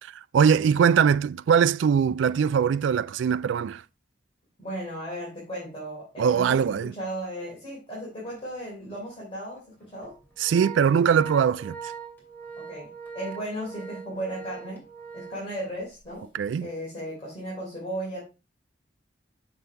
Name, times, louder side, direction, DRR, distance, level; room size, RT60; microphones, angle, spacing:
voice 1, 0.0-3.8 6.2-7.0 10.4-11.8 16.3-16.7, right 7 dB, 75° right, 0.3 m, -22 dB
voice 2, 4.6-10.1 12.5-12.9 13.1-14.8 15.1-16.3 16.6-18.2, right 1 dB, 30° left, 3.4 m, -35 dB
Organ, 8.3-8.5 8.9-9.0 9.8-16.1, right 6 dB, 10° left, 2.6 m, -42 dB
7.0 x 6.5 x 3.3 m
head